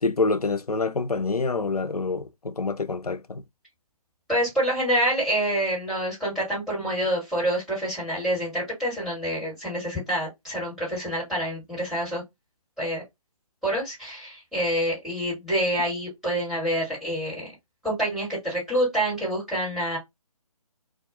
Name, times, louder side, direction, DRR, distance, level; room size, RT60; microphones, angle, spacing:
voice 1, 0.0-3.4, left 3 dB, 85° left, 0.4 m, -26 dB
voice 2, 4.3-12.2 12.8-13.0 13.6-17.5 17.8-20.0, right 1 dB, ahead, 1.5 m, -27 dB
2.4 x 2.3 x 2.6 m
figure-of-eight pair, 145°, 19 cm